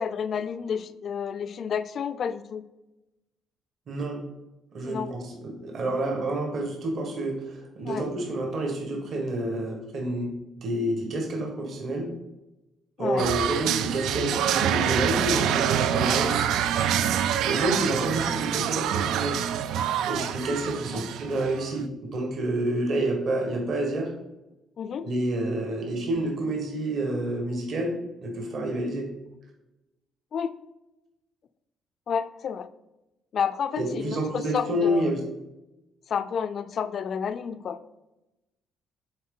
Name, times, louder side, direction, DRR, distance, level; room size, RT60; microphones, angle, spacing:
voice 1, 0.0-2.6 4.8-5.1 7.8-8.0 13.0-13.3 20.7-21.0 24.8-25.1 30.3-30.6 32.1-32.7 33.3-35.1 36.1-37.8, left 7 dB, 45° left, 12 dB, 0.4 m, -30 dB
voice 2, 3.9-4.2 4.7-10.3 10.6-12.1 13.0-16.5 17.4-19.4 20.1-24.1 25.0-27.9 28.2-29.1 33.8-35.2, right 1 dB, 50° right, 1 dB, 1.3 m, -28 dB
sound 1, 13.2-21.7, right 10 dB, 85° right, 0.3 m, -26 dB
8.7 x 3.8 x 3.8 m, 0.96 s
cardioid pair, 150°, 0 cm